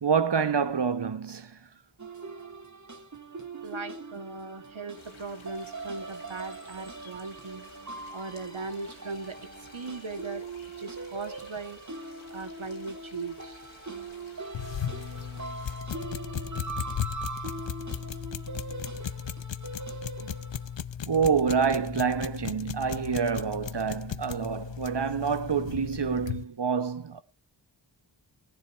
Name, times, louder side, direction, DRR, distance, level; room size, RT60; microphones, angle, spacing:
voice 1, 0.0-1.6 20.2-20.3 21.1-27.2, right 6 dB, 60° right, 1.1 m, -27 dB
sound 1, 2.0-20.7, right 3 dB, 35° right, 1.8 m, -41 dB
voice 2, 3.6-7.6 8.1-9.4 9.7-10.5 10.8-11.8 12.3-13.6, right 3 dB, 85° right, 2.1 m, -38 dB
sound 2, 5.0-15.8, left 3 dB, 85° left, 3.1 m, -54 dB
sound 3, 14.5-26.4, left 8 dB, 65° left, 0.7 m, -36 dB
15.0 x 10.5 x 4.6 m
wide cardioid pair, 55°, 47 cm